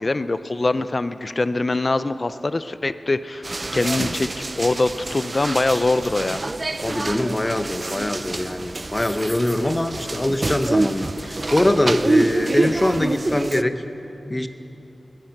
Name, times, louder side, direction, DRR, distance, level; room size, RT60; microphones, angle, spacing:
voice 1, 0.0-3.5 3.7-6.4, left 2 dB, 40° left, 13 dB, 0.5 m, -23 dB
sound 1, 3.4-13.6, right 2 dB, 40° right, 0.5 m, -26 dB
voice 2, 6.8-13.7 14.2-14.5, left 1 dB, 25° left, 9 dB, 0.9 m, -22 dB
20.5 x 10.5 x 6.6 m, 2.8 s
wide cardioid pair, 75°, 0 cm